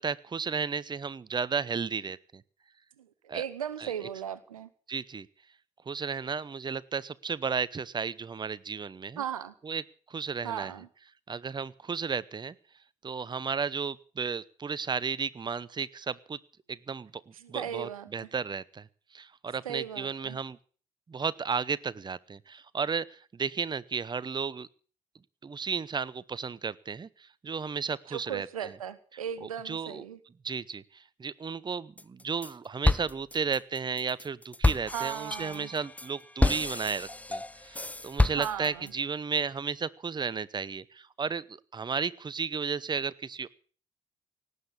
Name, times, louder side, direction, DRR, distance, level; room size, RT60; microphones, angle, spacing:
voice 1, 0.0-2.4 3.3-3.4 3.8-3.9 4.9-5.3 5.9-9.2 9.6-9.8 10.1-10.7 11.3-12.5 13.0-16.4 16.9-17.1 17.5-18.9 19.1-20.6 21.1-24.7 25.4-28.7 29.4-30.0 30.4-43.5, right 5 dB, 25° right, 18 dB, 0.8 m, -33 dB
voice 2, 3.0-4.7 9.2-9.5 10.4-10.9 17.3-18.3 19.6-20.4 28.1-30.2 34.9-35.7 38.4-38.9, right 9 dB, 85° right, 16 dB, 0.9 m, -37 dB
sound 1, 32.0-32.5 32.8-38.9, left 2 dB, 10° left, 0.7 m, -29 dB
18.5 x 8.3 x 8.5 m, 0.42 s
figure-of-eight pair, 45°, 18 cm